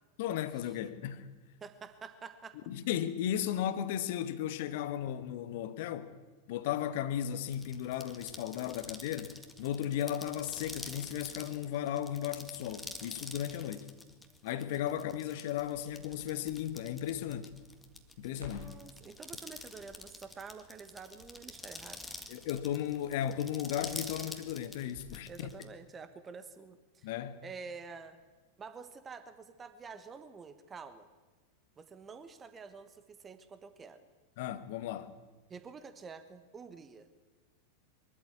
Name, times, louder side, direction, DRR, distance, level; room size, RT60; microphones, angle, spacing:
voice 1, 0.2-1.3 2.7-6.1 6.5-13.9 14.4-17.5 18.2-18.7 22.3-25.3 27.0-27.4 34.4-35.1, left 10 dB, 50° left, 1.4 m, -35 dB
voice 2, 1.6-2.6 13.8-13.9 14.8-15.0 18.5-22.0 25.3-27.1 27.4-28.2 28.6-31.1 31.8-34.0 35.5-37.1, right 5 dB, 20° right, 1.3 m, -48 dB
sound 1, 7.5-25.6, left 2 dB, 5° left, 1.9 m, -47 dB
Crackle, 15.5-25.3 25.6-25.7, left 3 dB, 80° right, 6.2 m, -58 dB
23.0 x 13.5 x 8.3 m
figure-of-eight pair, 90°, 0 cm